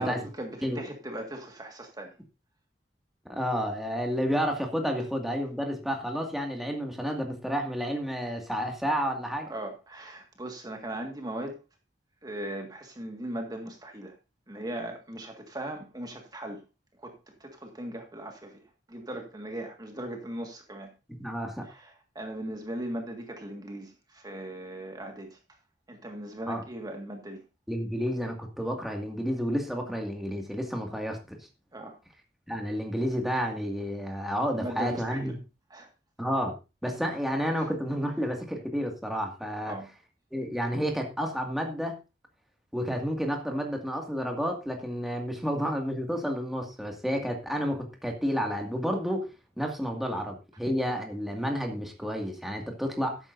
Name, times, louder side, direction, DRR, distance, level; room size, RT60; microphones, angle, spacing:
voice 1, 0.0-2.1 9.5-11.6 12.2-14.2 14.5-16.6 17.0-20.9 21.6-25.4 25.9-27.4 31.7-32.0 34.5-35.4 35.7-35.9 39.7-39.9, right 1 dB, 25° right, 1.8 m, -38 dB
voice 2, 3.3-9.5 21.2-21.7 26.5-26.6 27.7-31.4 32.5-35.3 36.2-36.5 36.8-39.8 40.3-41.9 42.7-49.3 49.6-53.2, equal, ahead, 2.1 m, -30 dB
13.5 x 10.5 x 2.7 m
head